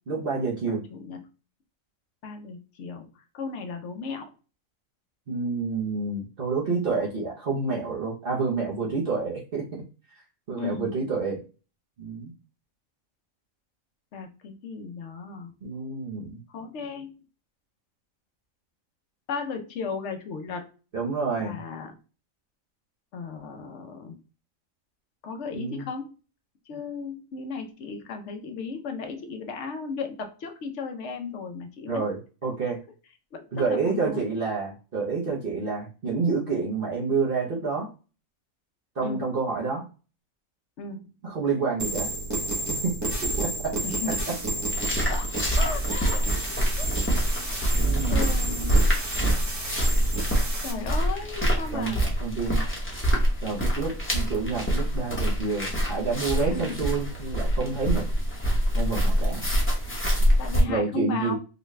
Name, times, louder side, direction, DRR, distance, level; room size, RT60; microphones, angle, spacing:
voice 1, 0.1-0.8 5.3-9.6 10.5-11.4 12.0-12.3 15.6-16.4 20.9-21.6 25.5-25.8 31.9-32.8 33.5-37.9 38.9-39.9 41.2-42.1 42.8-43.7 47.8-48.5 51.7-52.6 53.4-58.0 58.7-59.5 60.7-61.4, right 4 dB, 45° right, -4 dB, 0.9 m, -28 dB
voice 2, 0.7-1.2 2.2-3.1 3.3-4.3 10.6-10.9 14.1-15.5 16.5-17.1 19.3-20.7 21.4-21.9 23.1-24.2 25.2-26.1 26.7-32.0 33.3-34.3 39.0-39.3 40.8-41.1 43.8-44.2 45.1-45.3 45.6-46.9 48.1-49.0 50.6-52.0 56.5-56.8 60.4-61.4, left 4 dB, 60° left, 5 dB, 1.0 m, -35 dB
sound 1, 41.8-50.7, right 2 dB, 15° right, 0.6 m, -29 dB
sound 2, 44.7-60.6, equal, 10° left, 0.9 m, -26 dB
3.9 x 2.3 x 3.1 m, 0.34 s
omnidirectional pair, 1.4 m